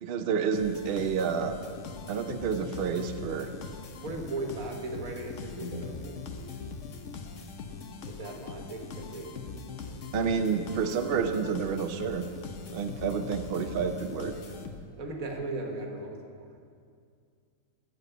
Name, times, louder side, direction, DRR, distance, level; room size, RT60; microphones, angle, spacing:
voice 1, 0.0-1.6 2.1-3.5 10.1-12.3 12.7-14.3, right 6 dB, 55° right, 7 dB, 0.7 m, -29 dB
sound 1, 0.5-15.1, left 4 dB, 65° left, 1.1 m, -41 dB
voice 2, 4.0-6.2 8.1-9.5 15.0-16.5, right 2 dB, 85° right, 2 dB, 1.7 m, -37 dB
14.0 x 4.7 x 8.1 m, 2.2 s
omnidirectional pair, 1.4 m